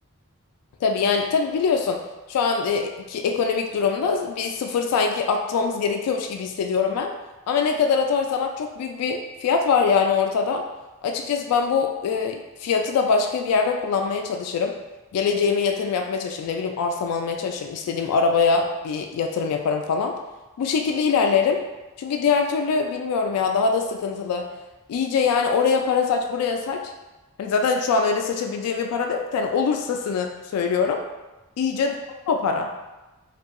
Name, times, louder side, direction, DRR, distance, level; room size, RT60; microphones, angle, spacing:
voice 1, 0.8-2.0 2.3-7.1 7.5-10.6 11.0-14.7 15.1-20.1 20.6-21.6 22.0-24.5 24.9-26.8 27.4-31.0 31.6-32.0 32.3-32.8, left 5 dB, 85° left, 4 dB, 0.3 m, -23 dB
2.6 x 2.3 x 2.4 m, 1.1 s
head